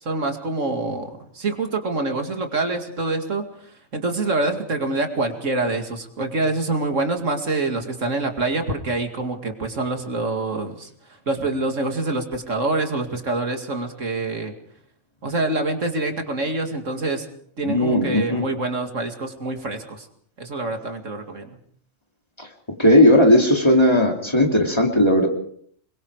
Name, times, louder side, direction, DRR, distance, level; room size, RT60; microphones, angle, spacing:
voice 1, 0.0-10.9 11.3-14.5 15.2-17.3 17.6-20.1 20.4-21.6, right 2 dB, 75° right, 5 dB, 2.7 m, -26 dB
voice 2, 17.6-18.4 22.4-22.5 22.8-25.3, left 1 dB, 20° left, 1 dB, 2.9 m, -16 dB
27.0 x 22.5 x 4.9 m, 0.63 s
omnidirectional pair, 1.3 m